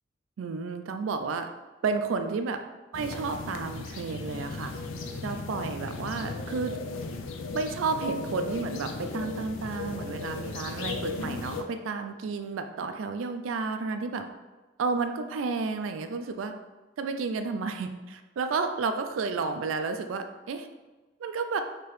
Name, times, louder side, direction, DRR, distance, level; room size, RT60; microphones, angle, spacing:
voice 1, 0.4-1.5 1.8-2.6 2.9-4.7 5.2-6.7 7.5-14.2 14.8-16.5 17.0-20.7 21.2-21.6, right 4 dB, 90° right, 7 dB, 0.4 m, -31 dB
sound 1, 2.9-11.6, left 4 dB, 90° left, 0.4 m, -36 dB
4.6 x 2.9 x 3.1 m, 1.2 s
head